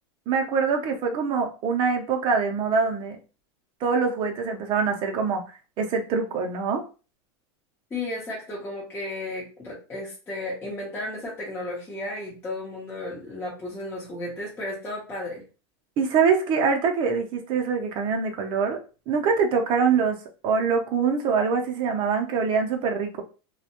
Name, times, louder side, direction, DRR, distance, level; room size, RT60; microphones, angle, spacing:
voice 1, 0.3-3.2 3.8-5.4 5.8-6.8 16.0-18.8 19.1-20.2 20.4-23.2, right 5 dB, 35° right, 3 dB, 0.5 m, -24 dB
voice 2, 7.9-15.4, left 2 dB, 15° left, -6 dB, 0.7 m, -34 dB
2.2 x 2.1 x 2.8 m, 0.34 s
supercardioid pair, 140°, 15 cm